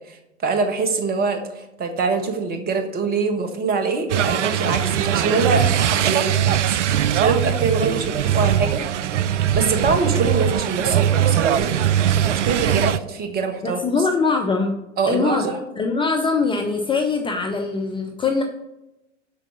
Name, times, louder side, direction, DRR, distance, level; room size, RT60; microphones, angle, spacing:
voice 1, 0.1-8.8 9.4-11.8 12.3-13.8 15.0-15.6, right 4 dB, 25° right, 6 dB, 1.4 m, -24 dB
sound 1, 4.1-13.0, right 10 dB, 70° right, 0.5 m, -21 dB
voice 2, 13.6-14.7 15.0-18.4, left 4 dB, 15° left, 3 dB, 0.7 m, -22 dB
7.8 x 5.9 x 6.8 m, 0.93 s
figure-of-eight pair, 95°, 37 cm